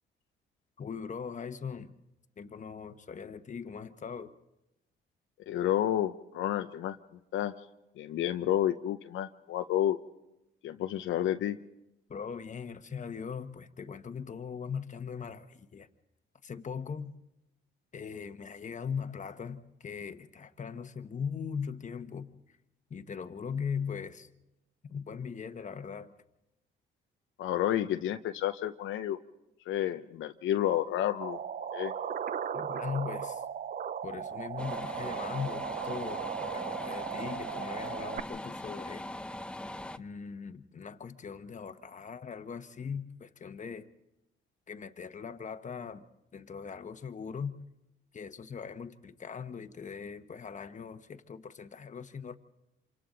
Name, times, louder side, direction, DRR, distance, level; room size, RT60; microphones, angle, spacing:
voice 1, 0.8-1.9 2.4-4.3 12.1-15.9 16.4-17.1 17.9-22.6 22.9-24.3 24.9-26.1 32.5-33.4 34.0-39.1 40.0-43.9 44.7-46.0 46.3-47.5 48.1-52.4, left 6 dB, 40° left, 1.1 m, -40 dB
voice 2, 5.5-7.0 7.3-7.5 8.0-10.0 10.6-11.6 27.4-29.2 29.7-31.4 31.7-31.9, left 11 dB, 80° left, 0.7 m, -30 dB
sound 1, 31.2-38.2, right 8 dB, 45° right, 0.6 m, -37 dB
sound 2, 34.6-40.0, left 1 dB, 5° left, 0.6 m, -41 dB
27.5 x 25.0 x 3.9 m
cardioid pair, 90°, 20 cm